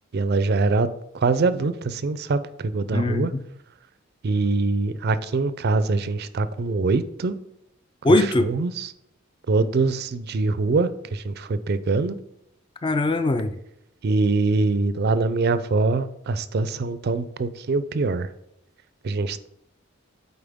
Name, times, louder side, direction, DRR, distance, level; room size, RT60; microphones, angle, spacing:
voice 1, 0.1-0.9 1.1-3.3 4.2-7.3 8.4-8.9 9.5-12.2 14.0-18.3 19.0-19.5, right 3 dB, 50° right, 0.4 m, -23 dB
voice 2, 2.9-3.4 8.0-8.5 12.8-13.5, left 2 dB, 25° left, 0.3 m, -21 dB
8.7 x 4.1 x 3.5 m
head